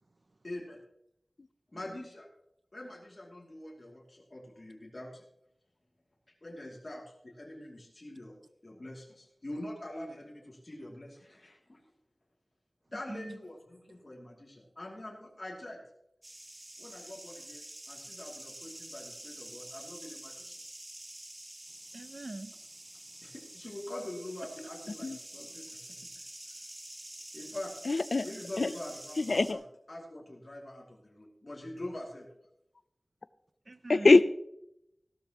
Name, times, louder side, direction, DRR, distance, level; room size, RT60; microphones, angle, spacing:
voice 1, 0.4-0.8 1.7-2.3 2.7-5.2 6.4-8.4 8.6-11.8 12.9-15.8 16.8-20.6 23.2-26.0 26.5-26.6 27.3-27.7 28.2-29.6 29.9-32.3, left 1 dB, 45° left, 2.6 m, -44 dB
voice 2, 12.9-13.4 21.9-23.3 33.7-34.1, right 2 dB, 55° right, 0.5 m, -45 dB
sound 1, 16.2-29.5, right 1 dB, 30° right, 1.6 m, -48 dB
voice 3, 27.8-28.3 28.6-28.7 29.2-29.6 33.9-34.2, left 3 dB, 70° left, 0.5 m, -23 dB
16.0 x 12.5 x 3.0 m
wide cardioid pair, 60°, 0 cm